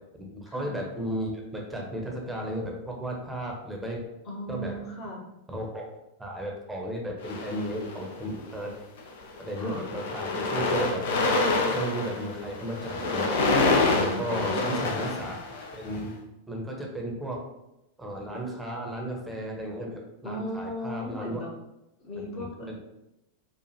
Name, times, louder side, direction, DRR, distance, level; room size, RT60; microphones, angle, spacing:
voice 1, 0.1-4.0 4.5-4.7 5.5-5.9 6.2-8.7 9.4-11.0 11.7-13.3 13.9-15.4 15.7-16.1 16.5-17.4 18.0-21.4 22.4-22.7, right 1 dB, 5° right, 0 dB, 0.9 m, -34 dB
voice 2, 4.2-5.2 9.6-9.8 13.8-14.5 20.2-21.5 22.0-22.8, left 1 dB, 35° left, -2 dB, 1.1 m, -36 dB
sound 1, 7.2-8.2 9.0-9.2 9.5-16.0, left 3 dB, 55° left, 0.6 m, -27 dB
4.7 x 2.4 x 2.8 m, 0.89 s
figure-of-eight pair, 90°, 0 cm